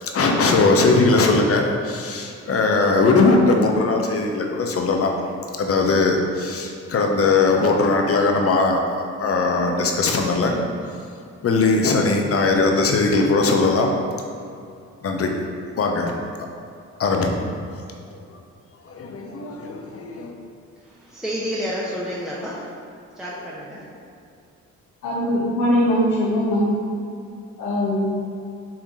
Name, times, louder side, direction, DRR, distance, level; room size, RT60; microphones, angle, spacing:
voice 1, 0.0-5.1 5.6-10.6 11.4-13.9 15.0-15.3 15.8-16.1 17.0-17.4 18.3-18.4 18.8-20.3, left 3 dB, 50° left, 2 dB, 0.9 m, -19 dB
voice 2, 21.1-22.7 23.2-23.8, equal, ahead, -7 dB, 1.0 m, -29 dB
voice 3, 25.0-26.7 27.6-28.2, equal, 80° left, -8 dB, 1.4 m, -21 dB
8.7 x 2.9 x 3.8 m, 2.5 s
cardioid pair, 90°, 30 cm